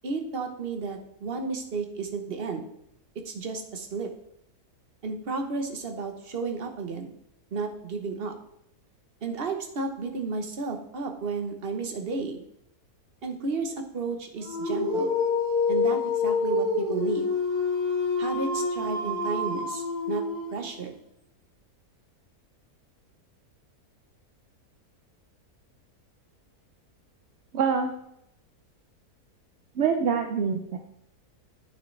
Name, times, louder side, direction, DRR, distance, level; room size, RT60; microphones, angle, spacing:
voice 1, 0.0-2.7 3.2-4.1 5.0-7.1 7.5-8.3 9.2-12.4 13.2-15.1 15.7-17.3 18.2-20.2 20.5-20.9, right 4 dB, 45° right, 4 dB, 1.1 m, -32 dB
Dog, 14.4-20.8, left 3 dB, 20° left, 2.2 m, -27 dB
voice 2, 27.5-27.9 29.8-30.8, right 6 dB, 60° right, 4 dB, 0.7 m, -25 dB
8.9 x 6.4 x 3.2 m, 0.75 s
omnidirectional pair, 1.6 m